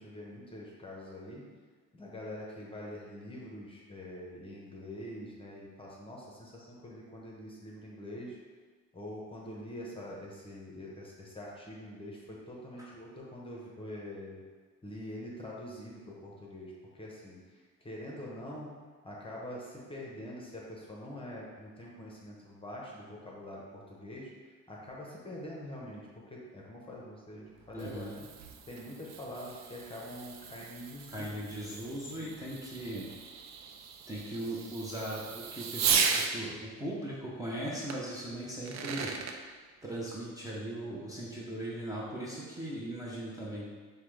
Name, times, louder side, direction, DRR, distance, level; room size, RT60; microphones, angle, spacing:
voice 1, 0.0-1.5 1.9-8.4 8.9-14.4 14.8-18.8 19.0-24.3 24.7-28.3 28.7-31.4 32.2-32.3, left 1 dB, 20° left, -3 dB, 0.9 m, -44 dB
Fireworks, 27.5-36.3 37.9-38.0 38.5-39.4, right 6 dB, 65° right, 0.5 m, -36 dB
voice 2, 27.7-28.1 31.1-33.1 34.1-39.1 39.8-43.7, right 1 dB, 10° right, -6 dB, 0.8 m, -39 dB
5.7 x 2.3 x 3.3 m, 1.5 s
cardioid pair, 90°, 30 cm